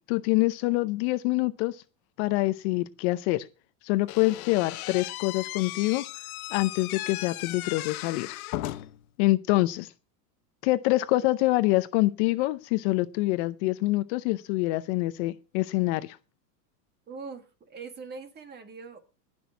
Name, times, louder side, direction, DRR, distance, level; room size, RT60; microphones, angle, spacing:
voice 1, 0.1-1.8 2.2-3.5 3.8-6.0 6.5-8.3 9.2-9.9 10.6-16.2, left 19 dB, 45° left, 0.7 m, -25 dB
Slam / Squeak, 4.1-9.1, left 17 dB, 65° left, 1.0 m, -37 dB
voice 2, 17.1-19.0, right 4 dB, 20° right, 1.8 m, -42 dB
18.5 x 6.3 x 5.7 m
supercardioid pair, 140°, 47 cm